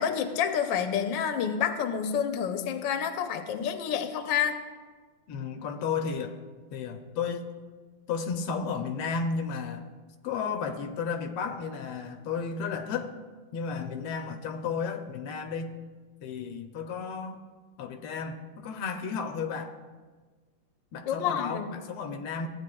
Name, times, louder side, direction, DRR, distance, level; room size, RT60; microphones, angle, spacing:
voice 1, 0.0-4.6 21.1-21.8, left 8 dB, 70° left, 7 dB, 1.2 m, -28 dB
voice 2, 5.3-6.4 6.7-7.5 8.1-9.9 10.2-13.2 13.5-15.8 16.2-17.4 17.8-19.7 20.9-22.5, left 5 dB, 85° left, 7 dB, 1.5 m, -33 dB
15.0 x 8.4 x 2.3 m, 1.4 s
omnidirectional pair, 2.4 m